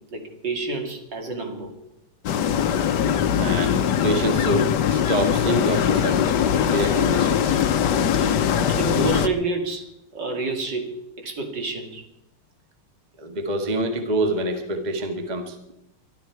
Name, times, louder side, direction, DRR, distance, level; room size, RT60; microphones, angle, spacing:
voice 1, 0.1-1.7 8.0-12.0, right 3 dB, 55° right, 3 dB, 2.9 m, -29 dB
sound 1, 2.2-9.3, left 8 dB, 60° left, 1.3 m, -21 dB
voice 2, 3.3-6.3 6.6-7.6 13.2-15.7, right 1 dB, 20° right, 5 dB, 1.5 m, -26 dB
23.0 x 12.5 x 4.7 m, 0.86 s
omnidirectional pair, 2.4 m